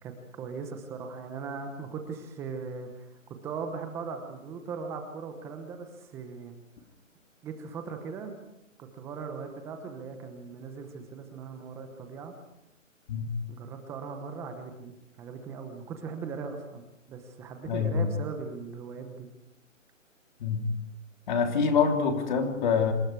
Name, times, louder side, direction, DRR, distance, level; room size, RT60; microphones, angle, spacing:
voice 1, 0.0-6.5 7.4-8.3 8.8-12.4 13.5-19.3, right 5 dB, 5° right, 6 dB, 1.0 m, -39 dB
voice 2, 17.7-18.1 20.4-20.7 21.3-22.9, left 6 dB, 35° left, 4 dB, 3.4 m, -25 dB
26.5 x 24.5 x 4.8 m, 0.85 s
hypercardioid pair, 155°, 40 cm